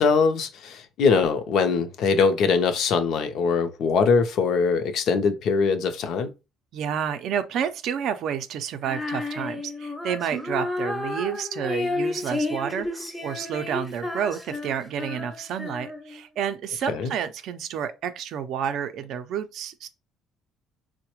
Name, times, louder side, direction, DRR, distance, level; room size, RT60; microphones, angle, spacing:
voice 1, 0.0-6.3 16.9-17.1, left 5 dB, 55° left, 0.5 m, -22 dB
voice 2, 6.7-19.9, right 8 dB, 60° right, 0.4 m, -30 dB
Female singing, 8.8-16.2, left 2 dB, ahead, 0.5 m, -31 dB
4.7 x 2.1 x 2.9 m
cardioid pair, 160°, 0 cm